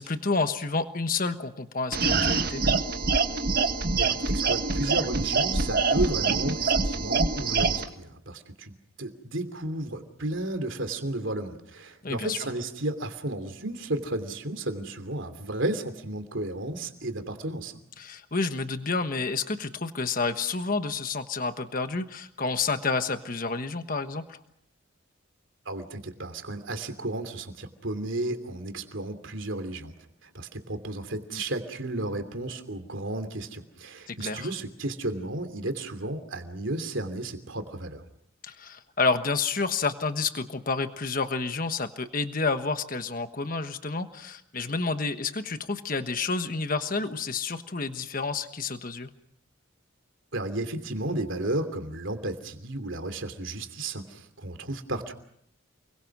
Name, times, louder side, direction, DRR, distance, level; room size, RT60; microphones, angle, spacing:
voice 1, 0.0-2.6 12.0-12.5 18.0-24.4 31.3-31.4 34.1-34.5 38.4-49.1, left 4 dB, 40° left, 8 dB, 1.3 m, -29 dB
sound 1, 1.9-7.8, right 4 dB, 45° right, 1.5 m, -25 dB
voice 2, 4.0-17.7 25.7-29.9 30.2-38.0 50.3-55.1, right 2 dB, 65° right, 7 dB, 2.9 m, -33 dB
29.0 x 22.5 x 6.2 m, 0.72 s
head